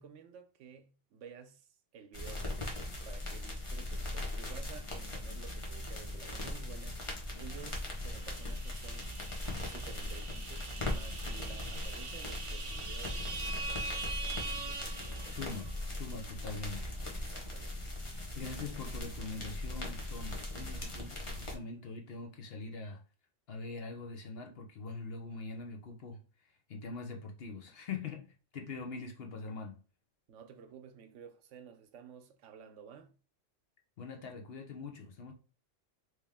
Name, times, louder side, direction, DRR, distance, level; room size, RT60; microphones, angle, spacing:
voice 1, 0.0-2.8 3.0-7.0 7.4-9.1 9.6-15.4 17.2-17.8 30.3-33.2, right 7 dB, 80° right, 1.0 m, -53 dB
sound 1, 2.1-21.6, left 1 dB, 30° left, 0.9 m, -39 dB
sound 2, 7.8-15.8, right 4 dB, 50° right, 0.4 m, -43 dB
voice 2, 15.3-17.4 18.3-23.0 23.5-26.2 26.7-29.8 34.0-35.3, left 4 dB, 60° left, 1.0 m, -43 dB
3.2 x 3.0 x 3.4 m
omnidirectional pair, 1.2 m